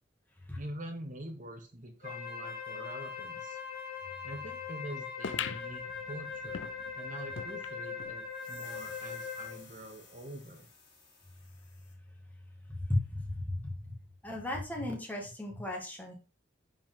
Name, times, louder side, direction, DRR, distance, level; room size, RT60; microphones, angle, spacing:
voice 1, 0.5-3.6 4.2-6.7 6.9-10.7, right 1 dB, 45° right, 5 dB, 1.1 m, -45 dB
Wind instrument woodwind instrument, 2.0-9.6, left 6 dB, 55° left, 2.7 m, -41 dB
sound 1, 5.2-8.2 8.6-8.7 8.9-9.0 9.8-9.9, left 7 dB, 90° left, 0.5 m, -41 dB
sound 2, 8.3-12.0, left 4 dB, 25° left, 3.3 m, -56 dB
voice 2, 12.8-13.9 14.2-16.1, left 1 dB, 10° left, -1 dB, 2.2 m, -35 dB
9.0 x 5.3 x 3.8 m, 0.32 s
head